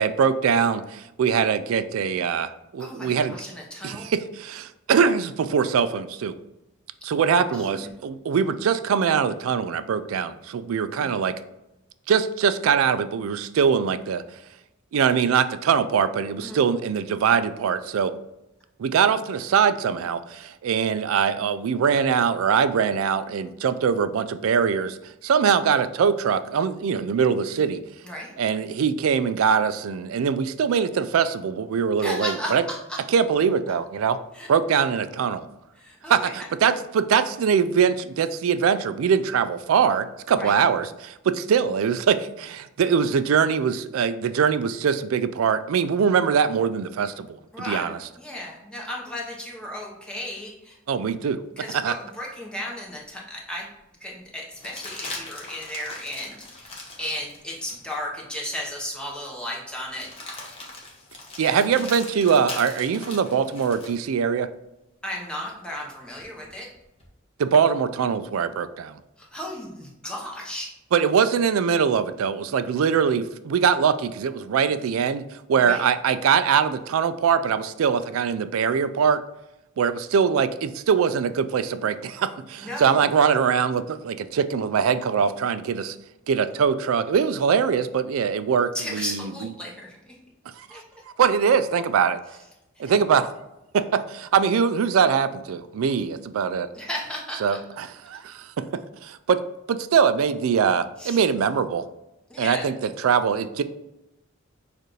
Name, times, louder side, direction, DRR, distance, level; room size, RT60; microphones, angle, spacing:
voice 1, 0.0-3.4 3.8-6.4 7.0-11.3 12.1-14.2 14.9-18.1 18.8-25.0 25.2-27.8 28.4-32.6 33.1-34.2 34.5-35.5 36.1-48.0 50.9-51.4 51.7-51.9 61.4-64.5 67.4-69.0 70.9-79.2 79.8-86.0 86.3-89.5 90.6-90.8 91.2-92.2 92.8-93.3 93.7-96.7 97.4-99.4 99.7-101.8 102.4-103.6, right 6 dB, 85° right, 12 dB, 0.4 m, -22 dB
voice 2, 2.8-4.1 7.5-7.9 11.0-11.2 16.4-16.6 28.0-28.4 32.0-33.0 34.3-34.8 35.8-36.3 40.3-40.6 47.5-50.8 51.6-53.7 54.0-60.1 61.4-61.5 65.0-66.7 69.2-70.7 75.5-75.8 82.6-83.0 88.7-90.2 90.7-91.0 92.8-92.9 96.7-97.6 101.0-101.2 102.3-102.7, left 1 dB, 5° left, -3 dB, 1.0 m, -35 dB
sound 1, 54.5-58.0 58.5-58.6 59.9-64.0 66.2-67.1, left 2 dB, 30° left, 1.0 m, -40 dB
6.6 x 2.5 x 3.1 m, 0.92 s
head